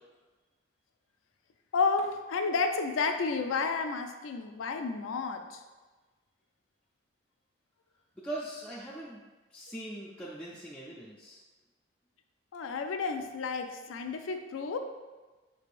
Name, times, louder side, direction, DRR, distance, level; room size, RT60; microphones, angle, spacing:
voice 1, 1.7-5.6 12.5-14.8, left 4 dB, 80° left, 6 dB, 0.4 m, -31 dB
voice 2, 8.2-9.2 9.5-11.4, right 1 dB, 5° left, -7 dB, 0.3 m, -41 dB
5.2 x 3.3 x 2.5 m, 1.2 s
head